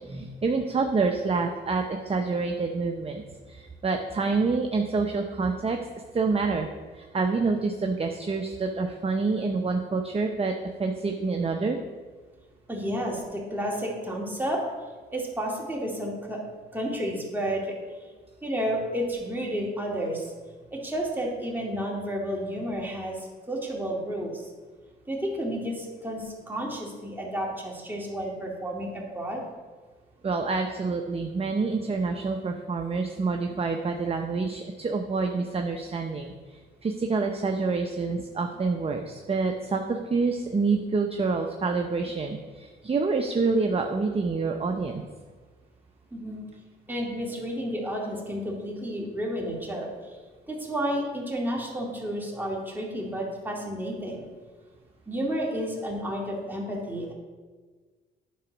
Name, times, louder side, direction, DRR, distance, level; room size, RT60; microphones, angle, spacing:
voice 1, 0.0-5.8 6.1-6.7 6.9-10.5 10.8-11.8 30.2-45.1, right 4 dB, 30° right, 4 dB, 0.7 m, -27 dB
voice 2, 12.7-14.6 15.1-16.4 16.7-17.8 18.4-20.3 20.7-24.4 25.1-29.4 46.1-46.4 46.9-49.9 50.5-54.2 55.1-57.1, equal, 10° right, -2 dB, 2.3 m, -31 dB
9.3 x 3.9 x 6.1 m, 1.4 s
cardioid pair, 70°, 20 cm